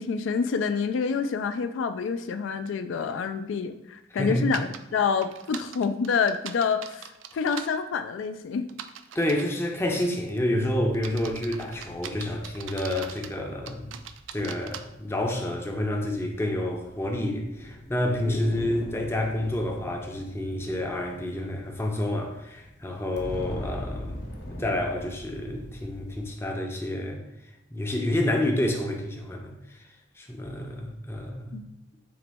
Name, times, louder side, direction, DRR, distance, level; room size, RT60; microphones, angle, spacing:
voice 1, 0.0-8.7 31.5-31.6, left 5 dB, 90° left, 10 dB, 0.3 m, -27 dB
voice 2, 4.1-4.5 9.1-13.9 14.3-24.2 24.5-27.2 27.7-29.5 30.2-31.6, left 1 dB, 15° left, 2 dB, 0.5 m, -29 dB
sound 1, 4.5-4.8 5.2-7.7 8.7-9.5 10.1-10.4 10.9-13.3 13.7-14.8, right 9 dB, 85° right, 0.3 m, -40 dB
sound 2, 10.6-26.2, left 1 dB, 60° left, 0.8 m, -42 dB
3.9 x 2.9 x 3.4 m, 0.92 s
head